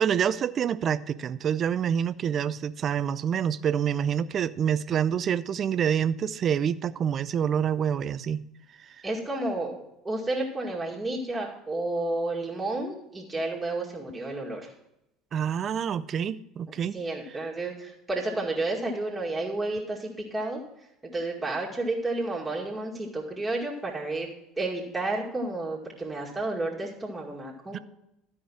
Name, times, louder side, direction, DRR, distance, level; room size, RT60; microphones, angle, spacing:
voice 1, 0.0-8.4 15.3-17.0 27.7-27.8, right 8 dB, 40° right, 16 dB, 0.4 m, -27 dB
voice 2, 9.0-9.8 10.0-14.7 16.9-20.6 21.1-24.3 24.6-27.8, right 2 dB, 15° right, -3 dB, 2.1 m, -31 dB
12.5 x 5.0 x 5.9 m, 0.85 s
figure-of-eight pair, 65°, 0 cm